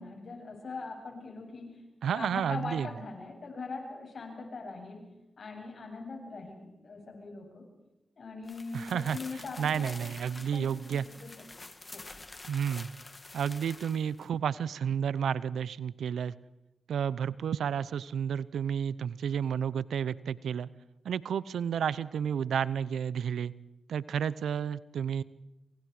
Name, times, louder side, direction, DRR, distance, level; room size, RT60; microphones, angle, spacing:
voice 1, 0.0-1.8 2.1-5.0 5.4-7.6 8.2-9.9 10.4-10.7 11.2-11.3 11.6-12.0, left 3 dB, 65° left, 2 dB, 7.9 m, -41 dB
voice 2, 2.0-2.9 8.7-11.0 12.5-12.9 13.3-16.3 16.9-20.7 21.0-23.5 23.9-25.2, right 8 dB, 85° right, 19 dB, 0.7 m, -31 dB
sound 1, 8.4-14.3, left 3 dB, 40° left, 2.7 m, -48 dB
28.0 x 25.5 x 4.9 m, 0.96 s
supercardioid pair, 40°, 0 cm